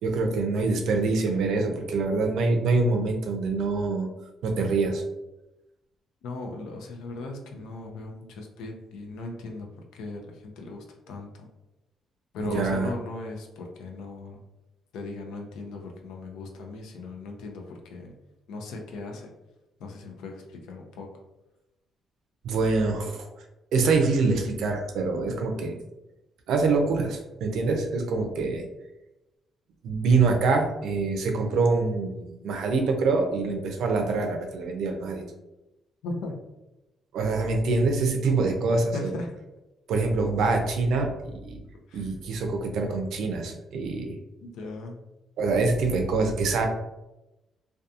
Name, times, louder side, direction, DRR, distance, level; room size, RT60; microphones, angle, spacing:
voice 1, 0.0-4.1 4.4-5.0 12.4-12.9 22.4-23.3 23.7-25.8 26.5-28.6 29.8-35.2 37.1-39.1 39.9-41.6 41.9-44.2 45.4-46.7, right 3 dB, 80° right, 3 dB, 0.5 m, -25 dB
voice 2, 6.2-9.7 9.9-11.5 12.3-14.4 14.9-18.1 18.5-19.3 19.8-21.1 36.0-36.3 38.9-39.3 41.9-42.1 44.4-45.0, left 2 dB, 90° left, 2 dB, 0.5 m, -38 dB
2.7 x 2.3 x 2.4 m, 0.97 s
cardioid pair, 90°, 0 cm